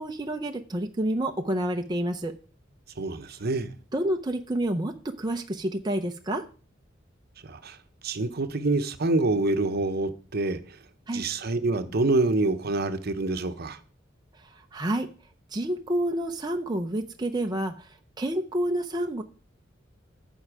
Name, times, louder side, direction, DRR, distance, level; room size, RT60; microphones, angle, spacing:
voice 1, 0.0-2.4 3.9-6.5 11.1-11.3 14.4-15.1 15.5-19.2, right 1 dB, 20° right, 0.6 m, -29 dB
voice 2, 3.0-3.7 7.4-7.8 8.0-10.8 11.1-13.8, right 2 dB, 55° right, 0.9 m, -26 dB
14.0 x 5.5 x 4.8 m
head